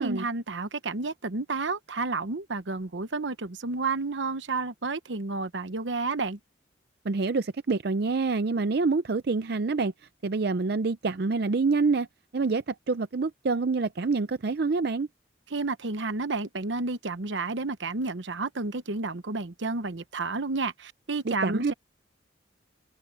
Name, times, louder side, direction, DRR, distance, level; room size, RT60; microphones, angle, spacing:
voice 1, 0.0-6.4 15.5-21.7, right 3 dB, 80° right, 1.0 m, -31 dB
voice 2, 7.0-9.9 10.2-12.1 12.3-15.1 21.3-21.7, right 4 dB, 55° right, 0.5 m, -26 dB
head